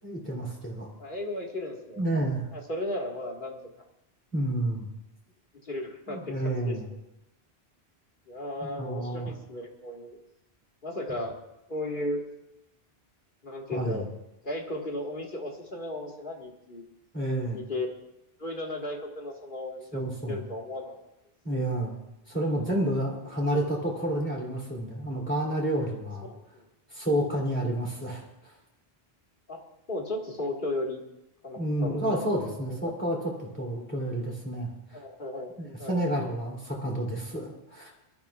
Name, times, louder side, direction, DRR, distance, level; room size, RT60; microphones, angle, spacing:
voice 1, 0.0-0.9 1.9-2.5 4.3-4.9 6.1-6.9 8.6-9.3 13.7-14.1 17.1-17.6 19.9-20.4 21.4-21.9 22.3-26.3 26.9-28.5 31.5-35.0 35.6-37.9, right 1 dB, 10° left, -3 dB, 2.9 m, -30 dB
voice 2, 1.0-2.0 2.5-3.6 5.6-7.0 8.3-10.2 10.8-11.4 11.7-12.2 13.4-14.0 14.4-16.8 17.5-17.9 18.4-21.0 26.3-26.4 27.5-27.7 29.5-29.6 29.9-31.0 31.4-32.0 32.7-32.8 34.9-35.5 35.8-36.0, left 1 dB, 55° left, 0 dB, 2.0 m, -35 dB
23.0 x 12.5 x 2.4 m, 0.88 s
omnidirectional pair, 1.0 m